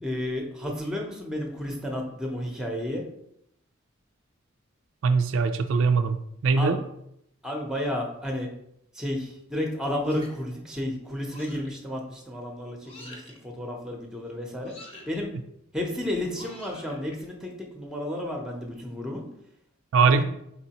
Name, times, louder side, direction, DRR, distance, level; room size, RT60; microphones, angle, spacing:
voice 1, 0.0-3.0 6.6-6.8 7.4-8.5 8.9-14.8 15.1-15.3 15.7-19.3 20.1-20.2, left 1 dB, 5° right, 1 dB, 0.7 m, -32 dB
voice 2, 5.0-6.2 6.4-6.8 19.9-20.2, right 4 dB, 70° right, 8 dB, 0.3 m, -21 dB
sound 1, 10.0-10.5 11.3-11.8 12.8-13.4 14.6-15.2 16.3-17.2, left 1 dB, 30° left, 0.9 m, -46 dB
4.5 x 3.9 x 2.9 m, 0.76 s
head